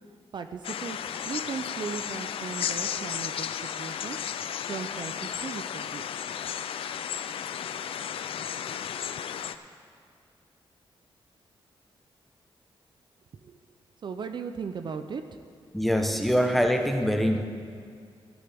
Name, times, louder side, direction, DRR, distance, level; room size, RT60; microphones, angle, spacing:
voice 1, 0.3-1.0 1.3-3.5 3.8-4.2 4.7-6.1 13.4-13.6 14.0-15.2, right 5 dB, 55° right, 8 dB, 0.5 m, -37 dB
sound 1, 0.6-9.6, left 8 dB, 80° left, 0.4 m, -34 dB
voice 2, 15.7-17.5, equal, ahead, 4 dB, 0.9 m, -24 dB
17.5 x 9.6 x 3.5 m, 2.2 s
cardioid pair, 105°, 9 cm